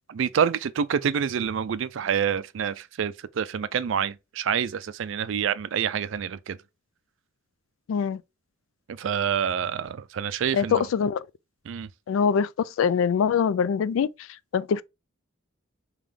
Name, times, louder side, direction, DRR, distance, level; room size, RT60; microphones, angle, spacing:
voice 1, 0.1-6.6 8.9-10.9 11.7-11.9, right 7 dB, 70° right, 0.4 m, -27 dB
voice 2, 7.9-8.2 10.5-11.3 12.1-14.1 14.5-14.8, left 6 dB, 80° left, 0.3 m, -23 dB
3.4 x 3.0 x 3.6 m
head